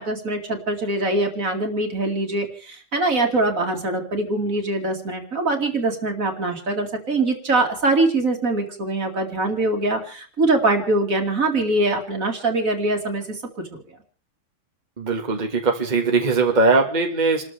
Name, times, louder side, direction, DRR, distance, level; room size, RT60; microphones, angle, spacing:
voice 1, 0.0-13.4 13.7-13.8, right 2 dB, 55° right, 4 dB, 2.7 m, -23 dB
voice 2, 15.0-17.4, right 3 dB, 25° right, 2 dB, 1.8 m, -20 dB
29.0 x 13.5 x 3.4 m, 0.42 s
omnidirectional pair, 1.8 m